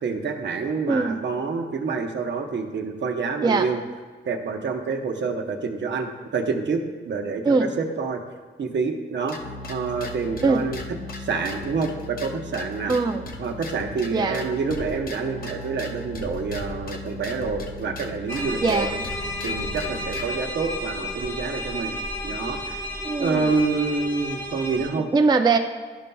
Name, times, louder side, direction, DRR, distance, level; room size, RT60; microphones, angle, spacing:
voice 1, 0.0-3.8 4.2-8.2 8.6-10.8 11.2-12.9 13.4-18.9 19.4-21.9 22.2-22.8 23.2-25.1, right 4 dB, 70° right, 3 dB, 0.7 m, -27 dB
voice 2, 0.9-1.2 3.4-3.7 7.4-7.7 10.4-10.7 12.9-13.3 14.1-14.4 18.6-19.0 23.0-23.5 25.1-25.6, right 4 dB, 20° right, 5 dB, 0.3 m, -21 dB
sound 1, 9.3-20.3, left 1 dB, 50° left, 0.6 m, -37 dB
sound 2, 18.3-24.9, left 1 dB, 15° left, 0.9 m, -32 dB
12.0 x 5.3 x 2.3 m, 1.4 s
wide cardioid pair, 135°, 19 cm